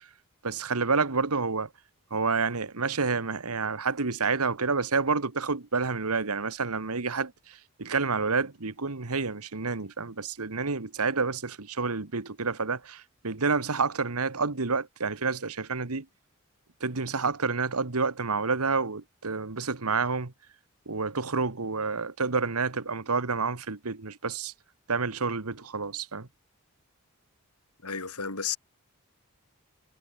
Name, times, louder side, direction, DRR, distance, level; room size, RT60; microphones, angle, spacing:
voice 1, 0.4-1.7 2.1-16.0 16.8-20.3 20.9-24.5 24.9-26.3, right 4 dB, 75° right, 1.5 m, -29 dB
voice 2, 27.8-28.6, left 6 dB, 90° left, 7.2 m, -32 dB
head